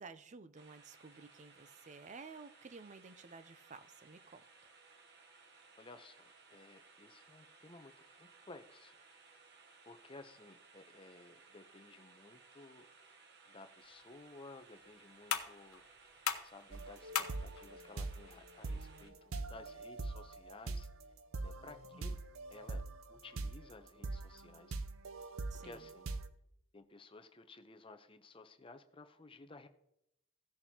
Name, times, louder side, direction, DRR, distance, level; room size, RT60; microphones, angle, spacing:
voice 1, 0.0-4.4 21.9-22.1 25.5-25.8, right 4 dB, 35° right, 0.5 m, -53 dB
sound 1, 0.6-19.1, right 4 dB, 55° right, 1.1 m, -62 dB
voice 2, 5.8-7.9 8.2-9.0 9.8-12.9 13.5-15.8 16.4-20.9 21.4-22.2 22.5-22.8 23.1-24.8 25.6-26.1 26.7-29.7, left 3 dB, 25° left, 0.7 m, -56 dB
sound 2, 13.8-20.8, left 8 dB, 75° left, 1.0 m, -44 dB
sound 3, 16.7-26.3, right 3 dB, 80° right, 0.7 m, -43 dB
16.5 x 6.8 x 2.9 m
head